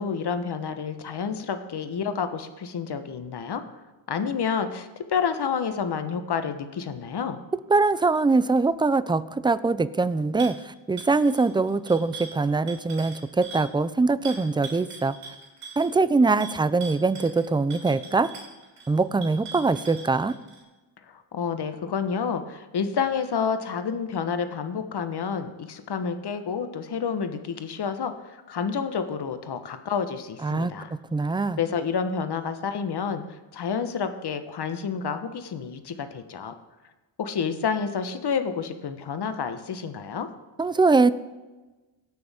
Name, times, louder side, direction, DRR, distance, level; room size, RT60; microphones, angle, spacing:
voice 1, 0.0-3.6 4.1-7.4 21.1-30.9 31.6-33.2 33.5-36.5 37.2-40.3, left 6 dB, 55° left, 9 dB, 1.2 m, -29 dB
voice 2, 7.7-15.1 15.8-18.3 18.9-20.3 30.4-31.6 40.6-41.1, right 3 dB, 10° right, 15 dB, 0.4 m, -23 dB
sound 1, 10.4-10.6 11.0-13.7 14.2-20.6, right 5 dB, 90° right, 3.4 m, -42 dB
17.5 x 6.3 x 3.6 m, 1.2 s
cardioid pair, 70°, 49 cm